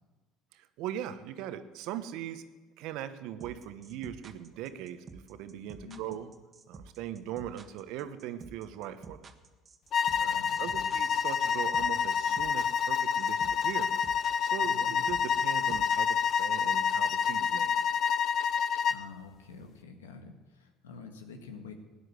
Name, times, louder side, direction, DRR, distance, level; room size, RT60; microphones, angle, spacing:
voice 1, 0.5-2.4 2.8-6.3 6.7-9.3 10.2-13.9 14.4-17.8, right 11 dB, 65° right, 11 dB, 1.1 m, -40 dB
sound 1, 3.4-16.6, right 4 dB, 35° right, 1.6 m, -49 dB
voice 2, 5.8-6.2 10.1-11.0 14.6-15.0 18.7-21.7, left 4 dB, 90° left, 6 dB, 1.7 m, -48 dB
sound 2, 9.9-19.1, left 7 dB, 50° left, 0.6 m, -28 dB
17.0 x 9.7 x 8.2 m, 1.2 s
hypercardioid pair, 65°, 0 cm